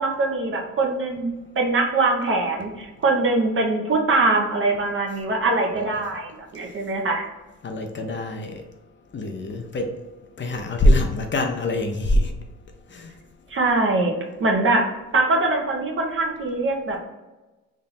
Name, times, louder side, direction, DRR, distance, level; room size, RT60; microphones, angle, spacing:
voice 1, 0.0-7.2 13.5-14.1 14.4-14.9 15.1-17.1, right 2 dB, 45° right, 0 dB, 1.0 m, -22 dB
voice 2, 7.6-8.6 9.1-9.9 10.4-12.3 12.9-13.1, left 1 dB, 40° left, 3 dB, 0.7 m, -23 dB
3.7 x 2.6 x 4.2 m, 1.1 s
cardioid pair, 90°, 30 cm